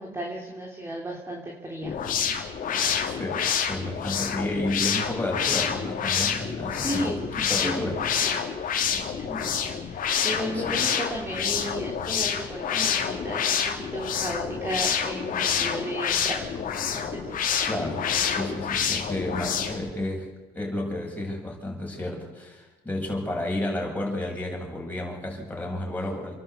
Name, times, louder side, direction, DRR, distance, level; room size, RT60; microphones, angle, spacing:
voice 1, 0.0-2.0 6.7-7.2 7.6-8.5 8.9-16.4 16.9-17.4, equal, 15° right, -1 dB, 3.5 m, -34 dB
sound 1, 1.8-19.9, left 7 dB, 55° left, 3.1 m, -28 dB
voice 2, 3.1-8.0 10.0-10.8 17.6-20.3 20.5-26.4, left 1 dB, 10° left, -2 dB, 7.8 m, -32 dB
29.5 x 11.5 x 8.3 m, 1.2 s
cardioid pair, 110°, 17 cm